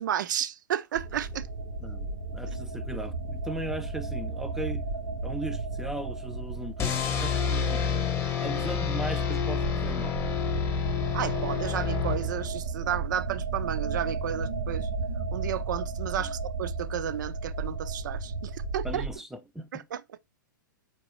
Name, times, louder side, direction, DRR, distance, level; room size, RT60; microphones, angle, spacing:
voice 1, 0.0-1.5 11.1-14.9 15.3-19.0 19.7-20.0, right 10 dB, 65° right, 0.4 m, -32 dB
sound 1, 0.9-19.2, right 3 dB, 85° right, 1.1 m, -34 dB
voice 2, 1.8-4.8 5.2-7.8 8.4-10.2 16.2-16.3 18.8-19.8, right 1 dB, 5° right, 0.4 m, -38 dB
sound 2, 6.8-12.7, left 7 dB, 20° left, 0.8 m, -29 dB
4.5 x 2.9 x 3.0 m
hypercardioid pair, 115°, 11 cm